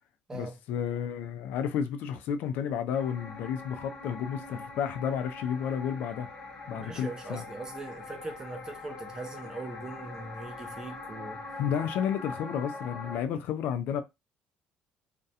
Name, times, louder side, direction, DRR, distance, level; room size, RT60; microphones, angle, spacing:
voice 1, 0.3-6.3 6.7-7.4 11.6-14.0, left 8 dB, 75° left, 0.3 m, -31 dB
sound 1, 2.9-13.2, left 3 dB, 40° left, 0.7 m, -43 dB
voice 2, 6.8-11.4, right 3 dB, 20° right, 0.6 m, -41 dB
2.4 x 2.1 x 2.7 m
cardioid pair, 125°, 3 cm